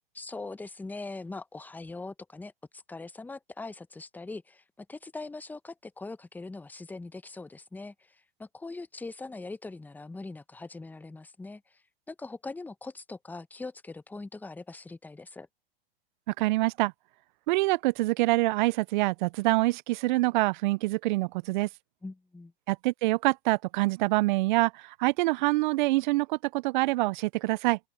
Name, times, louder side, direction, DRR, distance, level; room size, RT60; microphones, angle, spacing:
voice 1, 0.1-11.8 12.1-15.5 22.0-22.5, left 3 dB, 5° left, 1.0 m, -41 dB
voice 2, 16.4-16.9 17.5-21.7 22.7-27.8, right 20 dB, 55° right, 0.7 m, -26 dB
open air
hypercardioid pair, 110°, 30 cm